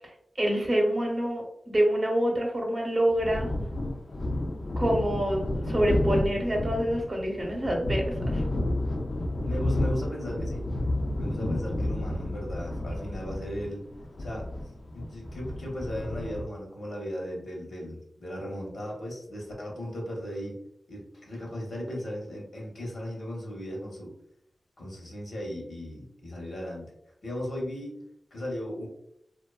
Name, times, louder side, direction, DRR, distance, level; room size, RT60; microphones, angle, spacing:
voice 1, 0.4-3.5 4.8-8.4, right 1 dB, 35° right, 0 dB, 0.7 m, -26 dB
sound 1, 3.1-16.4, left 1 dB, 55° left, 0.4 m, -31 dB
voice 2, 9.4-10.7 11.2-13.9 14.2-14.5 14.9-20.6 20.9-24.1 24.8-26.9 27.2-28.0 28.3-28.9, equal, 75° left, -2 dB, 0.9 m, -36 dB
2.6 x 2.2 x 2.2 m, 0.75 s
wide cardioid pair, 70°, 0 cm